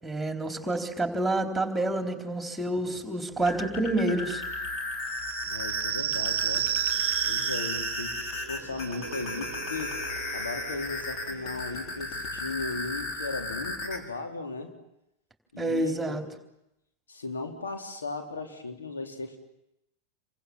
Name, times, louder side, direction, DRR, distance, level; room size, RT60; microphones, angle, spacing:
voice 1, 0.0-4.4 15.6-16.2, right 2 dB, 5° right, 5 dB, 3.9 m, -28 dB
sound 1, 3.3-14.0, left 2 dB, 40° left, 4.5 m, -35 dB
sound 2, 5.1-12.4, right 12 dB, 55° right, 0.9 m, -33 dB
voice 2, 5.4-6.7 7.2-10.0 10.3-14.7 15.5-16.2 17.1-19.4, left 3 dB, 70° left, 3 dB, 3.6 m, -36 dB
29.0 x 24.0 x 7.5 m, 0.84 s
figure-of-eight pair, 90°, 0 cm